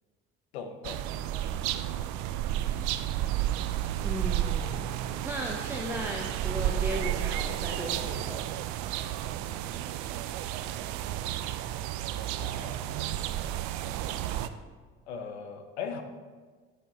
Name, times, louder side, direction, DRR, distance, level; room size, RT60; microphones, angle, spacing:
voice 1, 0.5-1.4 12.1-13.0 15.1-16.0, left 6 dB, 85° left, 7 dB, 0.8 m, -40 dB
sound 1, 0.8-14.5, right 12 dB, 60° right, 0.5 m, -32 dB
voice 2, 4.0-4.9 5.2-8.5, equal, 5° right, 1 dB, 0.9 m, -36 dB
7.6 x 5.1 x 4.3 m, 1.5 s
hypercardioid pair, 55°, 32 cm